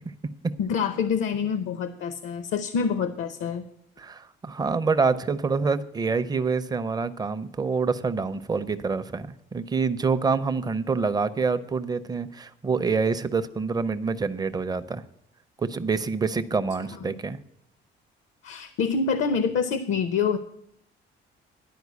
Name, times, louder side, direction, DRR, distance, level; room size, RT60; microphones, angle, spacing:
voice 1, 0.6-3.7 17.0-17.2 18.4-20.4, left 6 dB, 75° left, 11 dB, 0.7 m, -26 dB
voice 2, 4.0-15.0 15.6-17.4, right 4 dB, 20° right, 12 dB, 0.5 m, -26 dB
11.0 x 4.5 x 8.1 m, 0.74 s
cardioid pair, 125°, 20 cm